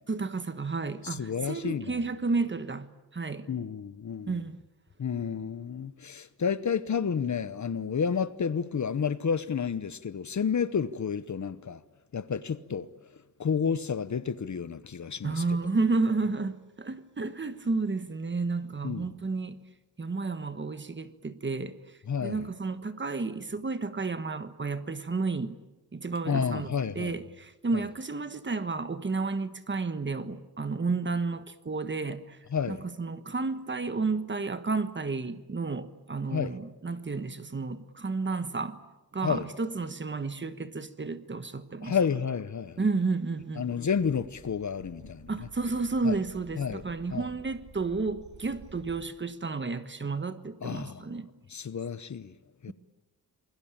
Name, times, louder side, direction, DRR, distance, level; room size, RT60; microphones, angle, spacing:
voice 1, 0.1-2.9 3.1-3.5 4.3-4.6 15.2-19.6 20.0-21.8 22.2-25.6 25.9-26.7 26.9-32.4 32.7-38.8 39.1-42.0 42.8-43.6 45.3-51.3, right 3 dB, 30° right, 1.3 m, -31 dB
voice 2, 1.0-2.0 3.5-4.4 5.0-11.8 12.1-12.9 13.4-15.4 18.8-19.0 22.1-22.5 26.3-27.2 27.7-27.8 32.5-32.8 36.3-36.6 39.2-39.5 41.8-42.8 43.6-45.5 46.0-46.2 46.6-46.8 47.1-47.3 50.6-51.0 51.5-52.3 52.6-52.7, left 6 dB, 50° left, 1.0 m, -30 dB
sound 1, 43.9-49.0, right 3 dB, 65° right, 7.7 m, -52 dB
28.0 x 21.0 x 8.9 m
wide cardioid pair, 155°, 38 cm